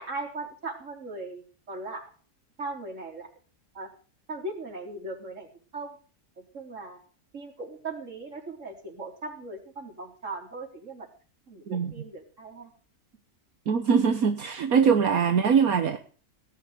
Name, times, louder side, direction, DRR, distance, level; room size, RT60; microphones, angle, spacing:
voice 1, 0.0-2.1 2.6-3.3 3.7-3.9 4.3-5.5 5.7-6.0 6.4-7.0 7.3-11.1 11.5-12.7, right 2 dB, 50° right, -1 dB, 4.5 m, -38 dB
voice 2, 13.7-16.0, right 6 dB, 65° right, 7 dB, 1.6 m, -22 dB
18.0 x 10.5 x 5.2 m, 0.40 s
omnidirectional pair, 1.7 m